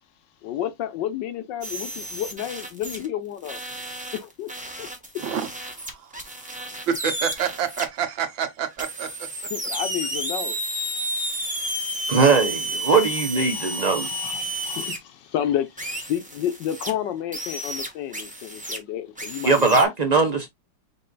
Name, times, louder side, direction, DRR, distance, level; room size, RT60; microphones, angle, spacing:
voice 1, 0.4-3.6 4.1-4.5 4.8-4.9 9.5-10.6 11.5-19.9, left 10 dB, 75° left, 1.3 m, -31 dB
sound 1, 1.6-3.1 3.4-7.9 8.8-15.0 15.8-16.9 17.3-18.8 19.2-19.8, right 1 dB, 5° right, 0.8 m, -32 dB
voice 2, 5.8-6.1 6.9-9.2, right 8 dB, 80° right, 1.7 m, -27 dB
voice 3, 12.1-14.1 19.4-20.5, right 4 dB, 60° right, 0.4 m, -20 dB
5.4 x 2.4 x 3.8 m
omnidirectional pair, 2.1 m